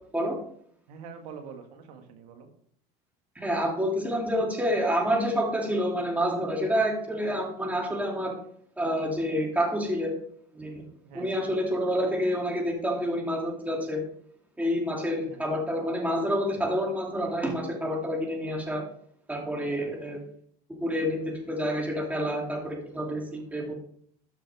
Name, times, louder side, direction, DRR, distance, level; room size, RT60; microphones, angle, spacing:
voice 1, 0.9-2.5 11.0-11.3 15.2-15.4 19.6-20.0, right 6 dB, 80° right, 5 dB, 1.9 m, -45 dB
voice 2, 3.4-8.3 8.8-10.2 10.5-10.8 11.1-14.0 14.6-18.8 19.3-20.2 20.8-23.7, equal, 5° right, -1 dB, 2.7 m, -28 dB
13.0 x 5.7 x 3.6 m, 0.63 s
supercardioid pair, 90°, 20 cm